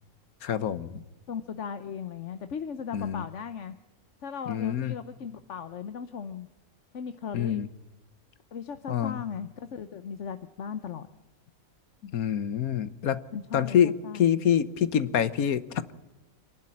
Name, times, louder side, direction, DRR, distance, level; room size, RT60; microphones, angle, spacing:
voice 1, 0.4-1.0 2.9-3.2 4.5-4.9 7.3-7.7 8.9-9.2 12.0-13.2 13.5-15.9, left 9 dB, 75° left, 15 dB, 1.5 m, -26 dB
voice 2, 1.3-3.7 4.2-6.5 6.9-7.6 8.5-11.1 13.3-14.3, left 7 dB, 60° left, 10 dB, 1.2 m, -37 dB
27.0 x 12.0 x 9.9 m, 1.0 s
omnidirectional pair, 1.5 m